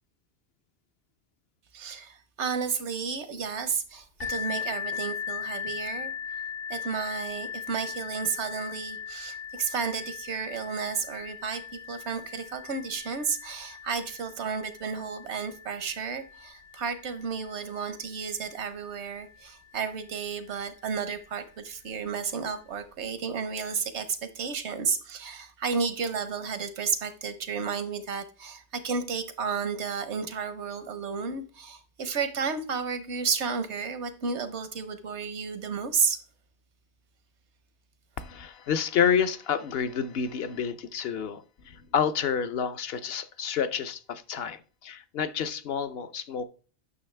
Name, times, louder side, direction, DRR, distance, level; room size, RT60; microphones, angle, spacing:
voice 1, 1.7-6.1 6.7-36.2, right 5 dB, 85° right, 1.2 m, -32 dB
sound 1, 4.2-19.7 20.5-20.6 21.2-21.3, left 7 dB, 90° left, 2.2 m, -39 dB
voice 2, 38.2-46.4, left 7 dB, 65° left, 0.8 m, -29 dB
9.6 x 6.1 x 3.3 m
omnidirectional pair, 1.1 m